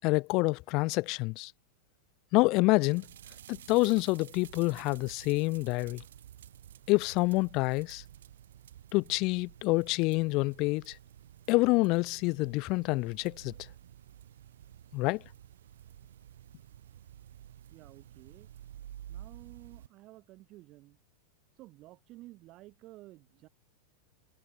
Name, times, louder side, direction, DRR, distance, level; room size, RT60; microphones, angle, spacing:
voice 1, 0.0-1.5 2.3-3.1 3.5-6.0 6.9-8.0 8.9-11.0 11.5-13.5 14.9-15.2, left 24 dB, 40° left, 0.5 m, -27 dB
sound 1, 2.8-19.9, right 11 dB, 60° right, 2.4 m, -52 dB
voice 2, 17.7-18.5 19.1-21.0 21.6-23.5, right 18 dB, 40° right, 7.4 m, -53 dB
figure-of-eight pair, 90°, 0 cm